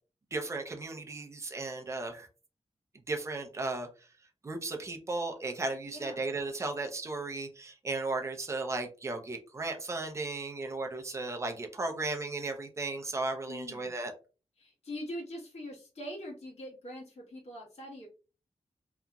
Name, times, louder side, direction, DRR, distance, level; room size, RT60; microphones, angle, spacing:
voice 1, 0.3-2.3 3.1-3.9 4.4-14.1, right 3 dB, 25° right, 4 dB, 0.5 m, -35 dB
voice 2, 5.9-6.2 13.5-13.9 14.6-18.1, left 1 dB, 70° left, -4 dB, 1.3 m, -43 dB
2.8 x 2.4 x 2.2 m, 0.35 s
wide cardioid pair, 150°, 11 cm